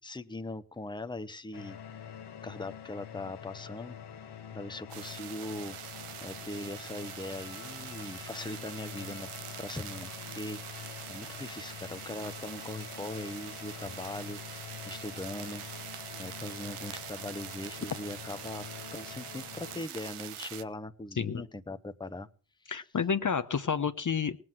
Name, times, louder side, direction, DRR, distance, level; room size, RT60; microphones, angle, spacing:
voice 1, 0.0-1.8 2.4-4.0 4.5-5.8 6.2-9.3 9.6-15.6 16.2-22.3 22.6-22.7, left 2 dB, 10° left, 10 dB, 1.0 m, -40 dB
sound 1, 1.5-19.9, left 8 dB, 55° left, 1.4 m, -46 dB
sound 2, 4.9-20.6, right 11 dB, 85° right, 0.9 m, -44 dB
voice 2, 22.7-24.4, left 6 dB, 40° left, 9 dB, 0.9 m, -30 dB
18.5 x 7.9 x 7.6 m, 0.40 s
cardioid pair, 65°, 49 cm